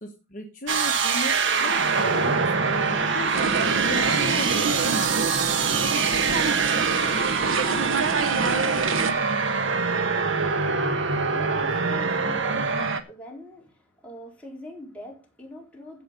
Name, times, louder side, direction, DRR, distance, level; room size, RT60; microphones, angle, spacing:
voice 1, 0.0-5.2, left 1 dB, 40° left, 1.3 m, -36 dB
sound 1, 0.7-13.0, right 5 dB, 60° right, 1.4 m, -24 dB
sound 2, 3.3-9.1, right 4 dB, 75° right, 1.1 m, -26 dB
voice 2, 9.3-16.0, left 1 dB, 5° left, 4.3 m, -44 dB
15.5 x 5.6 x 5.3 m
head